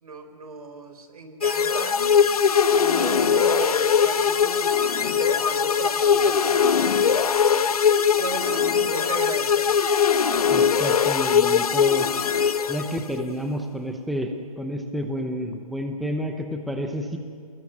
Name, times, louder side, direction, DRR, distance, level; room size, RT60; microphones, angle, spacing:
voice 1, 0.0-2.3 2.6-9.8, right 3 dB, 80° right, 7 dB, 4.6 m, -36 dB
sound 1, 1.4-13.2, left 7 dB, 80° left, 1.3 m, -21 dB
voice 2, 10.5-12.1 12.7-17.2, equal, ahead, 4 dB, 0.8 m, -30 dB
26.0 x 21.0 x 9.3 m, 2.2 s
hypercardioid pair, 165°, 19 cm